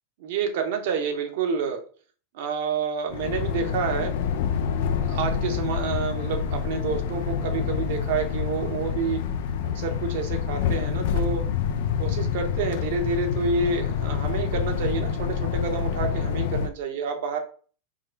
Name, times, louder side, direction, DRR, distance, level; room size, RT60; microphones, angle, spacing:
voice 1, 0.2-1.8 2.3-4.1 5.0-9.2 9.7-11.4 12.0-17.4, right 5 dB, 65° right, 5 dB, 0.9 m, -28 dB
sound 1, 3.1-16.7, left 7 dB, 65° left, 0.5 m, -27 dB
3.7 x 2.3 x 4.4 m, 0.42 s
hypercardioid pair, 115°, 0 cm